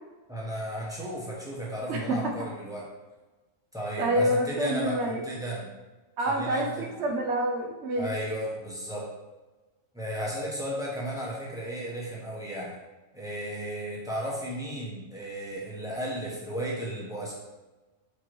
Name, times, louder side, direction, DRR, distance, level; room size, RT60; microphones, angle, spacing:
voice 1, 0.3-2.8 3.7-5.7 6.3-6.8 8.0-9.1 9.9-12.7 13.1-17.3, right 1 dB, 5° right, -5 dB, 0.7 m, -34 dB
voice 2, 1.9-2.3 4.0-5.2 6.2-8.1, right 1 dB, 65° right, 1 dB, 0.9 m, -27 dB
4.7 x 2.9 x 3.0 m, 1.2 s
omnidirectional pair, 1.3 m